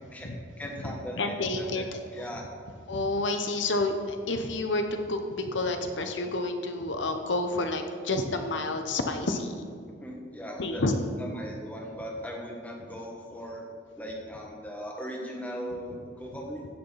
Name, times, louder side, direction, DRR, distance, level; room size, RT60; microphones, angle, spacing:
voice 1, 0.6-1.9 2.1-2.5 10.0-10.8 11.2-13.7 14.0-16.7, equal, 10° left, -1 dB, 1.4 m, -38 dB
voice 2, 1.2-1.8 2.9-9.6 10.6-10.9, left 2 dB, 75° left, 6 dB, 0.9 m, -29 dB
16.0 x 7.0 x 4.1 m, 2.2 s
head